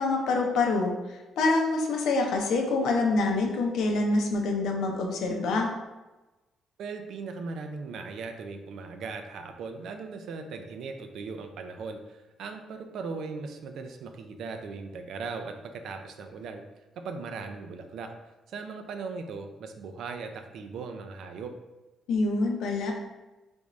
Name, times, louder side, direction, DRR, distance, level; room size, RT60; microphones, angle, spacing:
voice 1, 0.0-5.7 22.1-22.9, left 3 dB, 80° left, 1 dB, 0.6 m, -26 dB
voice 2, 6.8-16.6 17.0-18.1 18.5-21.5, right 4 dB, 75° right, 6 dB, 0.4 m, -38 dB
3.4 x 2.5 x 3.1 m, 1.1 s
cardioid pair, 90°, 0 cm